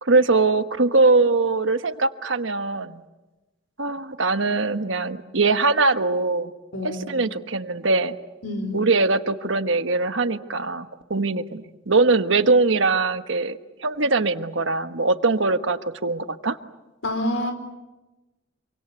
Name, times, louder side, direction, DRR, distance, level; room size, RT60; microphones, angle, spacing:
voice 1, 0.0-3.0 3.8-6.5 6.8-8.1 8.7-16.6, right 3 dB, 70° right, 9 dB, 1.3 m, -22 dB
voice 2, 6.7-7.1 8.4-8.8 17.0-17.5, left 1 dB, 75° left, 7 dB, 4.8 m, -27 dB
27.5 x 24.5 x 8.4 m, 1.1 s
head